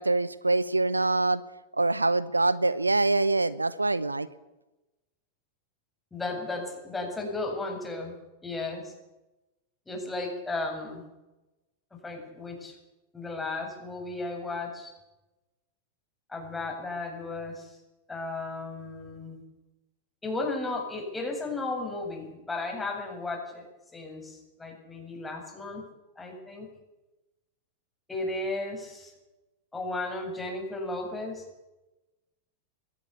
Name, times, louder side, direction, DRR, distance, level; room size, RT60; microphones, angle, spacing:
voice 1, 0.0-1.4 1.7-4.3, right 2 dB, 80° right, 17 dB, 0.9 m, -25 dB
voice 2, 6.1-8.1 8.4-8.9 9.9-11.0 11.9-12.7 13.1-14.9 16.3-17.8 18.1-19.4 20.2-23.6 23.9-25.8 26.2-26.7 28.1-29.1 29.7-31.4, left 2 dB, 10° left, 2 dB, 7.7 m, -34 dB
22.5 x 18.0 x 8.4 m, 1.0 s
figure-of-eight pair, 90°, 0 cm